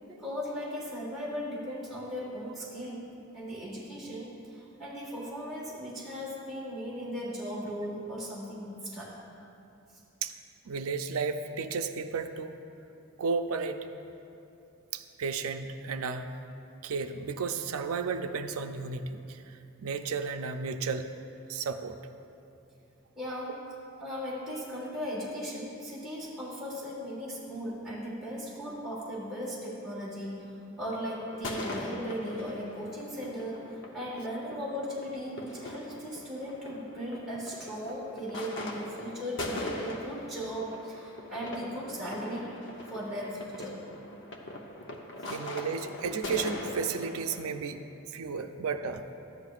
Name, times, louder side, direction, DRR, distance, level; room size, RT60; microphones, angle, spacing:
voice 1, 0.1-3.0 3.3-9.1 23.1-23.5 24.0-30.4 30.8-42.5 42.9-43.8 45.2-45.3, equal, ahead, -9 dB, 1.6 m, -37 dB
voice 2, 10.7-12.5 13.2-13.8 14.9-16.3 16.8-21.1 21.5-22.0 45.3-47.8 48.1-49.0, right 5 dB, 85° right, 8 dB, 0.5 m, -33 dB
sound 1, 31.3-47.4, left 1 dB, 60° left, 0.8 m, -41 dB
13.0 x 9.3 x 2.4 m, 2.7 s
head